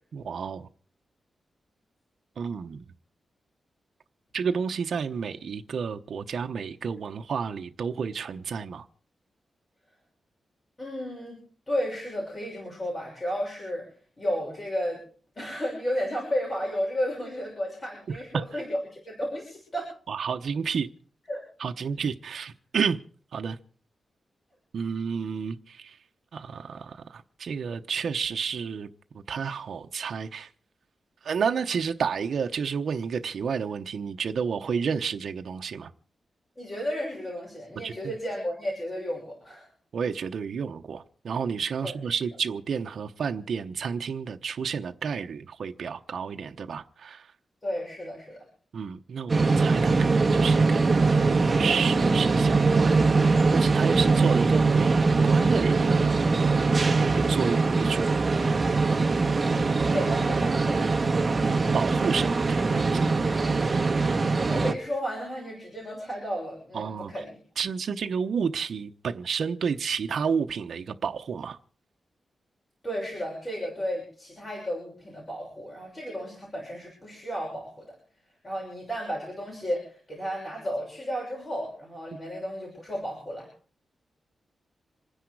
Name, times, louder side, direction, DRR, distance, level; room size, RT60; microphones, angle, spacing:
voice 1, 0.1-0.7 2.4-2.8 4.3-8.9 18.3-18.6 20.1-20.9 21.6-23.0 23.3-23.6 24.7-26.0 26.3-28.9 29.3-30.5 31.2-35.9 37.8-37.9 39.9-47.3 48.7-56.2 57.0-58.1 61.7-63.3 66.7-67.1 67.6-71.6, right 6 dB, 65° right, 0.8 m, -31 dB
voice 2, 10.8-11.4 11.7-13.9 14.2-15.0 15.4-19.9 21.3-21.4 36.6-39.7 41.8-42.2 47.6-48.4 59.5-60.8 64.0-67.4 72.8-77.9 78.4-83.5, equal, 25° left, 6.6 m, -33 dB
sound 1, 49.3-64.7, right 3 dB, 30° right, 1.5 m, -22 dB
27.5 x 10.0 x 4.7 m
wide cardioid pair, 140°, 0 cm